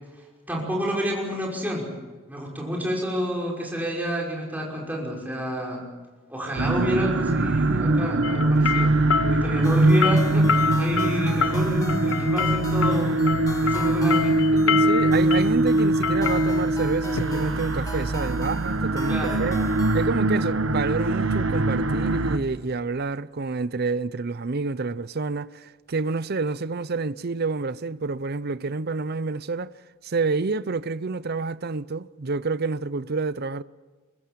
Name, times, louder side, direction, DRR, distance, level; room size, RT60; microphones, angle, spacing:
voice 1, 0.5-1.9 2.3-5.8 6.3-8.9 9.2-15.1 19.1-19.4, equal, 10° right, 5.6 m, -29 dB
sound 1, 6.6-22.4, right 2 dB, 75° right, 1.3 m, -22 dB
sound 2, 8.2-18.1, left 6 dB, 90° left, 0.8 m, -28 dB
sound 3, 9.6-20.1, left 2 dB, 15° left, 1.7 m, -40 dB
voice 2, 14.9-19.6 19.9-29.7 30.0-33.6, right 4 dB, 50° right, 0.6 m, -28 dB
23.5 x 22.5 x 7.6 m
head